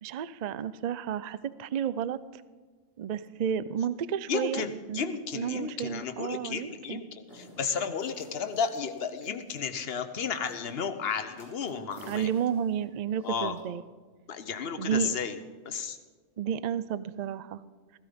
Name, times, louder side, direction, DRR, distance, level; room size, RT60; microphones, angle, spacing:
voice 1, 0.0-2.4 3.0-7.0 12.1-13.8 14.8-15.1 16.4-17.6, right 8 dB, 80° right, 16 dB, 0.3 m, -32 dB
voice 2, 4.3-12.3 13.2-13.5 14.3-15.4 15.6-16.0, left 6 dB, 50° left, 9 dB, 1.1 m, -33 dB
sound 1, 7.3-9.9 10.4-10.7 11.0-13.6, equal, 45° right, 4.8 m, -54 dB
16.0 x 15.0 x 5.1 m, 1.5 s
omnidirectional pair, 1.4 m